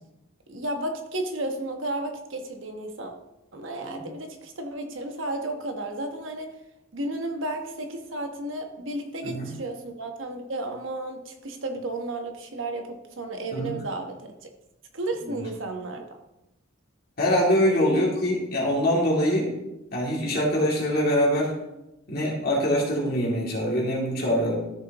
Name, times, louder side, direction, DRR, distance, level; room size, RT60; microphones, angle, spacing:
voice 1, 0.5-3.1 3.5-6.5 6.9-14.3 14.9-16.0 17.9-18.1, right 2 dB, 70° right, 4 dB, 1.2 m, -33 dB
voice 2, 17.2-19.5 19.9-21.5 22.1-24.6, equal, 50° left, -3 dB, 2.7 m, -24 dB
13.5 x 6.6 x 3.0 m, 0.92 s
head